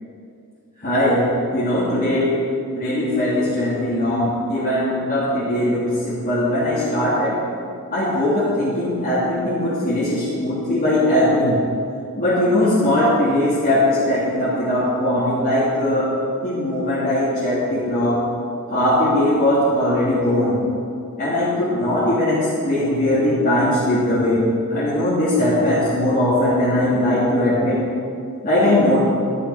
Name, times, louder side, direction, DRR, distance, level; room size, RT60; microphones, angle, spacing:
voice 1, 0.8-2.3 2.7-7.4 7.9-11.6 12.2-16.1 16.4-18.2 18.7-20.6 21.2-24.4 24.7-27.8 28.4-29.0, left 1 dB, 40° left, -10 dB, 3.0 m, -20 dB
12.5 x 9.9 x 6.3 m, 2.5 s
head